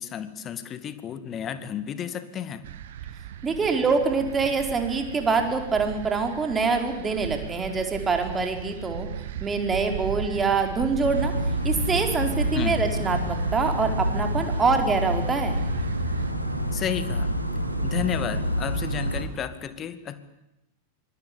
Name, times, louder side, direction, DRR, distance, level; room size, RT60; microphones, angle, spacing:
voice 1, 0.0-2.7 12.5-12.8 16.7-17.3 17.8-20.2, left 9 dB, 30° left, 12 dB, 2.2 m, -32 dB
sound 1, 2.6-16.3, right 10 dB, 55° right, 1.4 m, -37 dB
voice 2, 3.4-9.1 9.4-11.3 11.6-15.6, right 4 dB, 15° right, 4 dB, 4.4 m, -25 dB
sound 2, 11.0-19.2, equal, 85° right, 3.2 m, -27 dB
25.0 x 21.5 x 8.6 m, 0.91 s
figure-of-eight pair, 90°, 0 cm